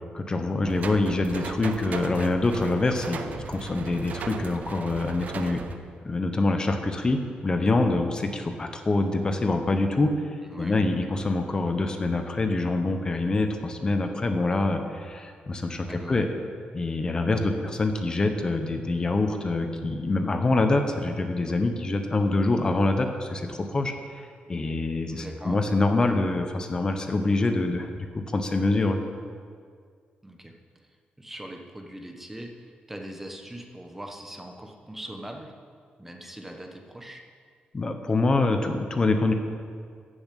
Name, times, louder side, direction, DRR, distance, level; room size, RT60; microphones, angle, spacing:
voice 1, 0.1-3.2 3.5-5.6 6.0-10.1 10.6-16.3 16.7-29.0 37.7-39.3, left 2 dB, 25° left, 6 dB, 1.1 m, -25 dB
sound 1, 0.6-5.8, right 5 dB, 55° right, 0.8 m, -36 dB
voice 2, 10.4-10.8 15.9-16.3 25.1-25.6 30.2-30.5 31.2-35.5 36.0-37.2, right 1 dB, 10° right, 3 dB, 1.2 m, -41 dB
14.0 x 7.1 x 8.4 m, 2.1 s
wide cardioid pair, 160°, 3 cm